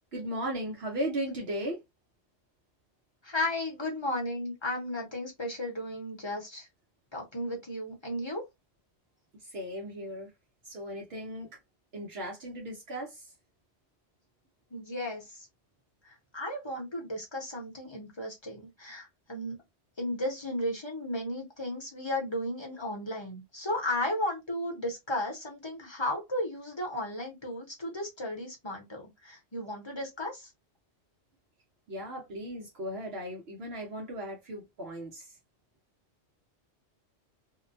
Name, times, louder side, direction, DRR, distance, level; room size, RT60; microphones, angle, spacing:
voice 1, 0.1-1.8 9.4-10.3 10.6-11.6 11.9-13.3 31.9-35.4, equal, 65° right, 1.0 m, -36 dB
voice 2, 3.2-6.7 7.1-8.4 14.7-15.5 16.0-19.6 20.0-30.5, left 1 dB, 25° left, 0.8 m, -34 dB
2.7 x 2.1 x 2.5 m
omnidirectional pair, 1.2 m